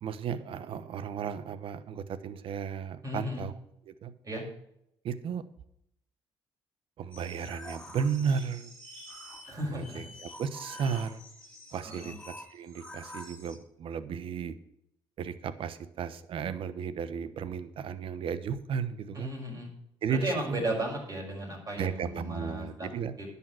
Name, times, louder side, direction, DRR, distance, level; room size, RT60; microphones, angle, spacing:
voice 1, 0.0-3.6 3.9-4.1 5.0-5.4 7.0-8.7 9.7-11.2 11.7-14.5 15.2-19.3 20.0-20.6 21.8-23.1, right 6 dB, 65° right, 13 dB, 1.0 m, -34 dB
voice 2, 3.0-3.4 4.2-4.4 9.4-10.0 11.8-12.1 19.1-19.7 20.2-22.9 23.2-23.3, right 1 dB, 35° right, -1 dB, 6.2 m, -35 dB
sound 1, 7.1-13.6, left 1 dB, 5° left, 3.2 m, -47 dB
10.5 x 7.1 x 7.7 m, 0.76 s
supercardioid pair, 75°, 10 cm